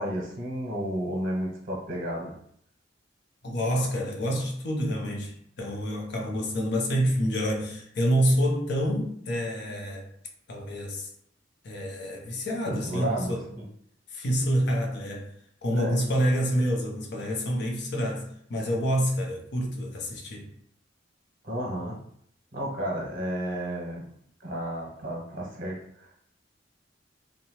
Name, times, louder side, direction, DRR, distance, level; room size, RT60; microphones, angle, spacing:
voice 1, 0.0-2.3 12.7-13.6 15.7-16.0 21.4-22.0 22.5-24.0 24.4-26.1, right 1 dB, 45° right, 0.8 m, -32 dB
voice 2, 3.4-10.1 10.5-11.1 11.6-13.4 14.1-15.3 15.6-20.5, equal, 60° left, 0.6 m, -27 dB
2.7 x 2.2 x 2.9 m
head